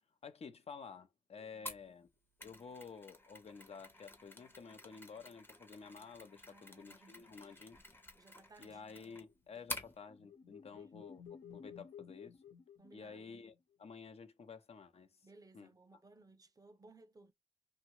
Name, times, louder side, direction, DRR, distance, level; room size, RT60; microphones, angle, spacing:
voice 1, 0.2-2.1 2.4-7.8 8.6-12.4 12.9-15.3 15.5-15.7, left 5 dB, 55° left, 0.5 m, -52 dB
voice 2, 1.4-1.7 6.4-7.6 8.1-9.2 9.6-9.7 10.7-11.1 12.8-13.3 15.2-17.3, right 2 dB, 30° right, 0.4 m, -62 dB
Mechanisms, 1.7-9.9, left 1 dB, 15° left, 0.6 m, -51 dB
sound 1, 9.8-13.6, left 7 dB, 85° left, 1.1 m, -54 dB
2.9 x 2.2 x 3.0 m
wide cardioid pair, 130°, 12 cm